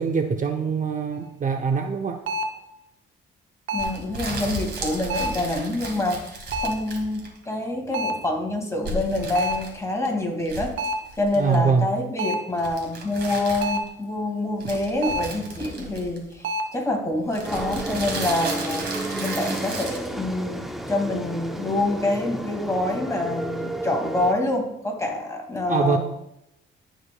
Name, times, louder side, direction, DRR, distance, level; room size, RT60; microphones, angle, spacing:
voice 1, 0.0-2.2 11.4-11.9 25.7-26.0, right 5 dB, 40° right, 5 dB, 0.7 m, -23 dB
sound 1, 1.2-1.3 2.3-2.7 3.7-4.1 5.1-5.5 6.5-6.9 7.9-8.3 9.4-9.8 10.8-11.1 12.2-12.6 13.6-14.0 15.0-15.4 16.4-16.8, right 1 dB, 80° right, 0.8 m, -28 dB
voice 2, 3.7-10.7 11.2-26.0, left 2 dB, 15° left, 1 dB, 2.1 m, -26 dB
sound 2, 3.8-7.4 8.8-10.1 10.4-11.5 12.6-13.9 14.6-16.4 17.3-20.1, right 2 dB, 55° right, 2.1 m, -34 dB
sound 3, 17.4-24.3, right 1 dB, ahead, 0.7 m, -32 dB
14.0 x 5.1 x 2.3 m, 0.84 s
cardioid pair, 90°, 20 cm